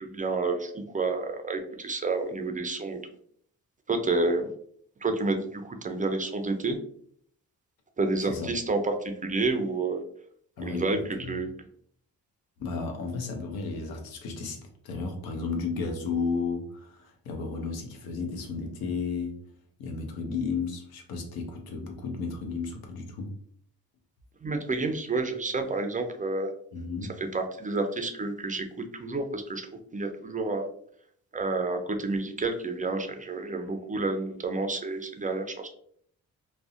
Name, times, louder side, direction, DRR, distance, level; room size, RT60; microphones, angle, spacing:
voice 1, 0.0-3.0 3.9-4.5 5.0-6.8 8.0-10.0 10.6-11.5 24.4-26.5 27.2-29.6 29.9-30.7 31.3-35.7, right 3 dB, 25° right, 6 dB, 0.4 m, -29 dB
voice 2, 10.6-11.3 12.6-19.4 19.8-23.4 26.7-27.1, left 4 dB, 80° left, 3 dB, 0.6 m, -33 dB
2.5 x 2.1 x 2.4 m, 0.63 s
supercardioid pair, 55°, 35 cm